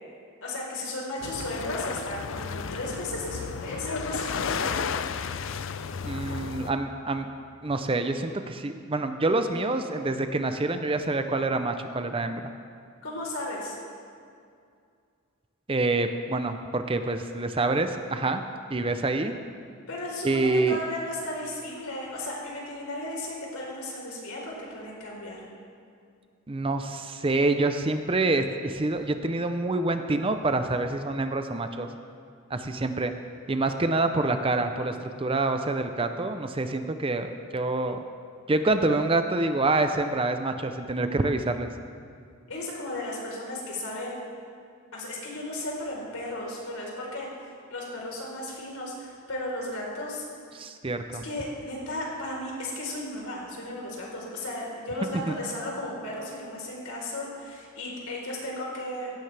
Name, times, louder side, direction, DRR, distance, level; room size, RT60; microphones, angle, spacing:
voice 1, 0.4-4.9 13.0-13.7 19.9-25.4 42.5-44.2 44.9-47.3 47.7-50.2 51.2-59.1, left 1 dB, 75° left, -3 dB, 4.0 m, -35 dB
sound 1, 1.2-6.7, left 6 dB, 60° left, 0.5 m, -33 dB
voice 2, 6.0-7.3 7.6-12.4 15.7-18.4 18.7-19.3 20.2-20.8 26.5-31.9 32.5-33.1 33.5-38.0 38.5-41.7 50.5-51.2 55.3-55.4, right 2 dB, 25° right, 8 dB, 0.5 m, -26 dB
16.5 x 15.0 x 3.4 m, 2.3 s
head